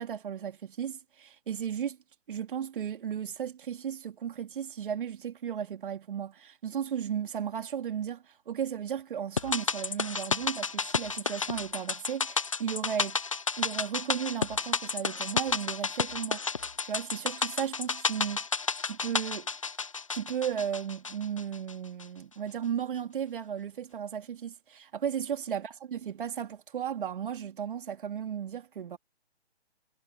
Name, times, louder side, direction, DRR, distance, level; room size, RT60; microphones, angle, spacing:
voice 1, 0.0-2.0 2.3-13.2 13.6-16.4 16.8-18.4 18.9-19.5 20.1-29.0, right 8 dB, 50° right, 3.1 m, -35 dB
sound 1, 9.4-21.7 22.0-22.1, left 4 dB, 30° left, 0.4 m, -32 dB
hypercardioid pair, 155°, 34 cm